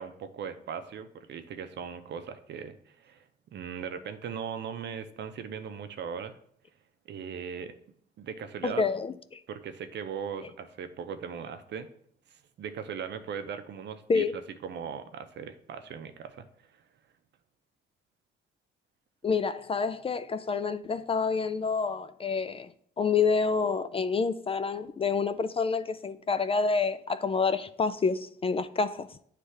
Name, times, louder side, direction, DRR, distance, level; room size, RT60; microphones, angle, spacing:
voice 1, 0.0-3.2 3.5-6.3 7.1-7.7 8.2-8.8 9.5-11.9 12.3-16.5 16.7-16.8, right 7 dB, 60° right, 0.7 m, -39 dB
voice 2, 8.6-9.4 14.1-14.3 19.2-22.7 23.0-29.1, left 5 dB, 30° left, 0.3 m, -28 dB
9.4 x 3.3 x 3.3 m
cardioid pair, 90°, 20 cm